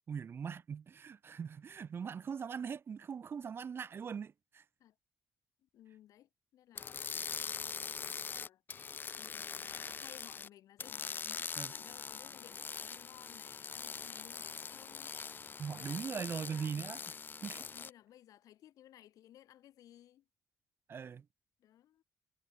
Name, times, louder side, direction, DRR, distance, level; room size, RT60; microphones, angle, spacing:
voice 1, 0.0-4.6 11.6-11.7 15.6-17.0 17.4-17.6 20.9-21.2, right 6 dB, 40° right, 0.5 m, -41 dB
voice 2, 5.6-8.6 9.2-16.7 17.7-20.3 21.6-22.0, left 12 dB, 75° left, 2.7 m, -59 dB
sound 1, 6.7-10.5 10.8-17.9, left 6 dB, 35° left, 0.4 m, -43 dB
cardioid pair, 90°, 6 cm